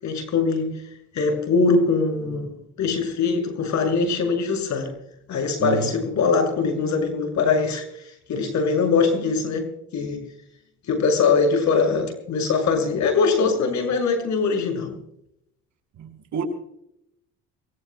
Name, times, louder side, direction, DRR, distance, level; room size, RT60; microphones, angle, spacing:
voice 1, 0.0-0.7 1.1-2.5 2.8-4.9 5.3-7.8 8.3-9.7 9.9-10.2 10.9-14.9, left 4 dB, 65° left, 6.6 m, -22 dB
voice 2, 5.6-6.0 16.0-16.4, right 8 dB, 65° right, 6.1 m, -29 dB
24.0 x 24.0 x 2.3 m
supercardioid pair, 85°, 31 cm